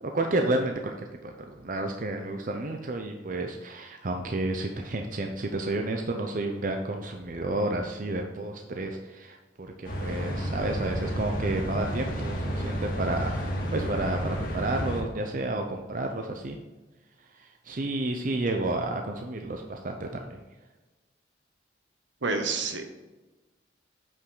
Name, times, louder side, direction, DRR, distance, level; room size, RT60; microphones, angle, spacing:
voice 1, 0.0-16.6 17.2-20.4, right 2 dB, 45° right, 3 dB, 0.6 m, -31 dB
sound 1, 9.8-15.0, equal, 45° left, 1.9 m, -31 dB
voice 2, 22.2-22.9, right 4 dB, 70° right, 6 dB, 1.0 m, -29 dB
8.5 x 5.3 x 3.9 m, 1.2 s
head